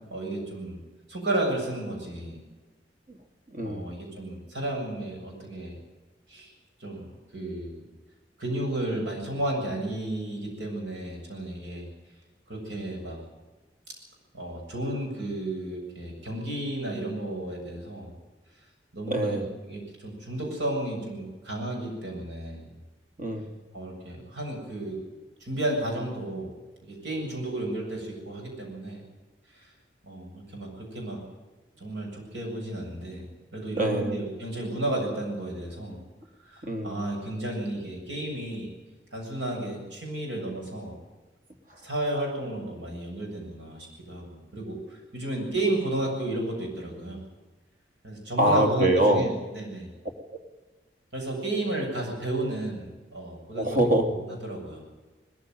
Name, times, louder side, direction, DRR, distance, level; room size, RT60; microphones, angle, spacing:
voice 1, 0.1-0.8 1.1-2.4 3.6-5.8 6.3-6.5 6.8-7.8 8.4-11.9 12.5-13.2 13.9-14.0 14.3-18.1 18.9-22.7 23.7-25.0 25.4-26.5 26.8-29.0 29.5-29.7 30.0-31.2 31.8-36.0 36.4-38.7 39.1-41.0 41.8-47.2 48.0-49.9 51.1-53.7 54.1-54.8, right 1 dB, 85° right, 0 dB, 7.5 m, -32 dB
voice 2, 3.5-3.9 19.1-19.5 23.2-23.5 33.8-34.2 36.6-37.0 48.4-49.2 53.5-54.1, right 1 dB, 50° right, 4 dB, 2.8 m, -24 dB
20.0 x 15.0 x 9.3 m, 1.2 s
head